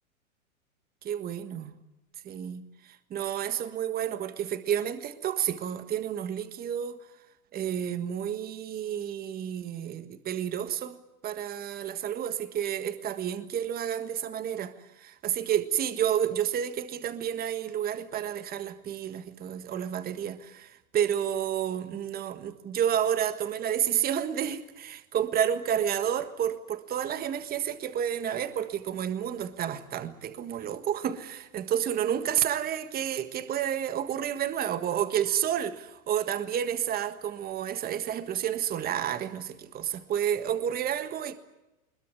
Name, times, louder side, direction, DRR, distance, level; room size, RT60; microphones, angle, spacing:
voice 1, 1.0-1.7 2.2-2.6 3.1-7.0 7.5-11.0 11.2-14.7 15.0-41.3, right 9 dB, 20° right, 1.6 m, -30 dB
22.0 x 20.5 x 9.7 m
hypercardioid pair, 135°, 42 cm